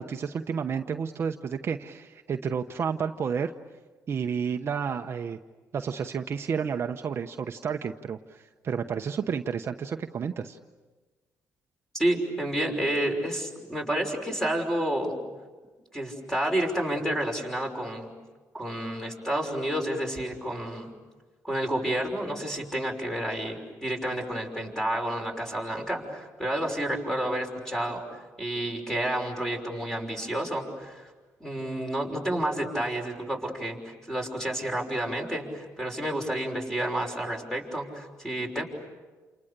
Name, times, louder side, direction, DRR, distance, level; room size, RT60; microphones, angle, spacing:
voice 1, 0.0-3.5 4.1-5.4 5.7-10.6, right 6 dB, 45° right, 6 dB, 0.9 m, -31 dB
voice 2, 11.9-15.2 15.9-18.1 18.5-20.9 21.4-31.1 31.4-38.6, right 1 dB, 5° left, 2 dB, 5.9 m, -30 dB
29.0 x 28.5 x 6.8 m, 1.3 s
cardioid pair, 110°, 6 cm